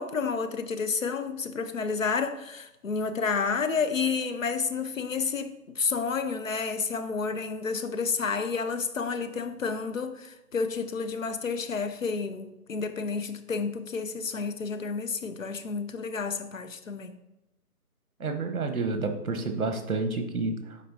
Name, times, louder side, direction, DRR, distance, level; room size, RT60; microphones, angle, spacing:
voice 1, 0.0-17.2, left 5 dB, 55° left, 0.6 m, -30 dB
voice 2, 18.2-20.8, right 3 dB, 65° right, 1.0 m, -29 dB
10.0 x 4.4 x 2.7 m
figure-of-eight pair, 160°, 46 cm